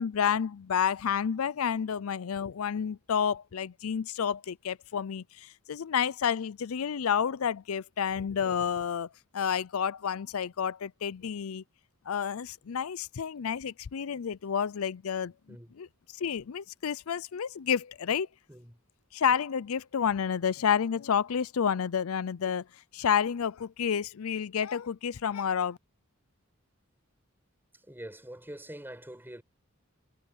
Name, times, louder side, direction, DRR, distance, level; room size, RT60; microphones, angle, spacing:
voice 1, 0.0-11.6 12.1-15.3 15.8-15.9 16.1-18.3 19.1-22.6 22.9-25.8, left 7 dB, 90° left, 0.5 m, -30 dB
voice 2, 18.5-18.9 27.8-29.4, right 1 dB, 10° right, 7.9 m, -45 dB
head